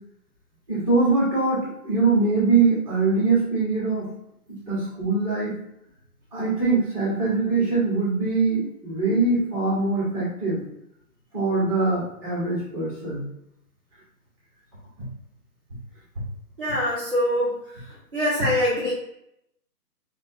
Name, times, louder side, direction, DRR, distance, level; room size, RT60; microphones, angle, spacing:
voice 1, 0.7-4.1 4.5-5.5 6.3-10.6 11.3-13.3, right 3 dB, 20° right, -7 dB, 1.0 m, -23 dB
voice 2, 16.6-17.8 18.1-18.9, left 1 dB, 35° right, -7 dB, 0.6 m, -24 dB
3.0 x 2.3 x 2.6 m, 0.79 s
hypercardioid pair, 165°, 48 cm